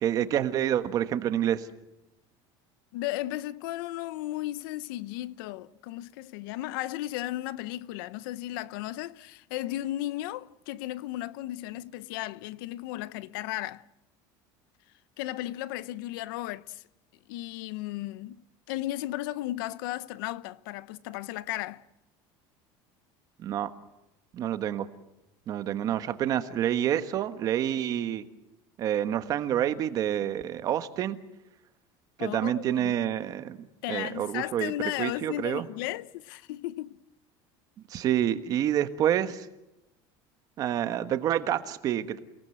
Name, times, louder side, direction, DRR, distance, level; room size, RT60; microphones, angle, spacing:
voice 1, 0.0-1.7 23.4-23.7 24.3-24.9 25.5-28.2 28.8-31.2 32.2-33.6 33.9-34.7 35.0-35.7 37.9-39.5 40.6-42.2, right 10 dB, 35° right, 1.3 m, -28 dB
voice 2, 2.9-13.8 15.2-16.8 17.3-21.8 32.2-33.0 33.8-37.0, left 15 dB, 90° left, 0.9 m, -35 dB
29.5 x 18.5 x 7.8 m
cardioid pair, 175°, 11 cm